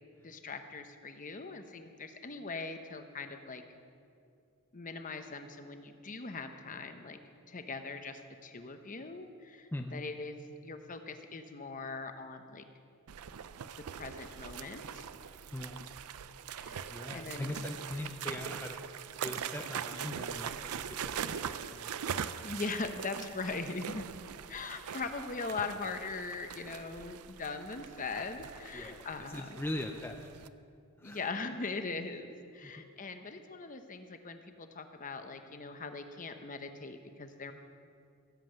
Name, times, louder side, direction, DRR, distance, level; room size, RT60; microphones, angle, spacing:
voice 1, 0.2-3.6 4.7-7.2 7.5-10.4 10.6-12.6 13.9-15.0 16.5-17.6 22.4-24.1 24.5-29.6 31.0-37.5, left 4 dB, 35° left, 7 dB, 0.8 m, -41 dB
voice 2, 9.7-10.0 15.5-15.8 16.9-18.8 19.2-21.9 28.7-30.2 31.0-31.2 32.6-32.7, left 1 dB, 10° left, 3 dB, 0.5 m, -41 dB
sound 1, 13.1-30.5, right 8 dB, 80° right, 0.5 m, -42 dB
16.5 x 7.6 x 7.7 m, 2.4 s
head